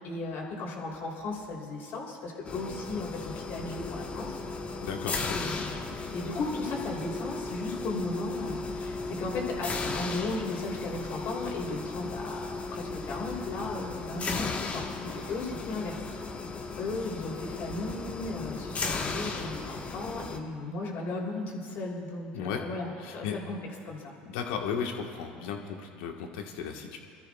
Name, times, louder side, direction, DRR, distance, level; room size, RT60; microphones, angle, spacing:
voice 1, 0.0-4.4 5.3-16.0 16.8-23.6 23.8-24.1, left 3 dB, 55° left, -1 dB, 3.2 m, -36 dB
sound 1, 2.4-20.4, left 3 dB, 30° left, 1.3 m, -36 dB
voice 2, 4.8-5.5 22.3-22.6 23.0-23.4 24.2-27.0, left 7 dB, 75° left, 3 dB, 1.4 m, -35 dB
25.5 x 13.5 x 2.4 m, 2.3 s
hypercardioid pair, 85°, 4 cm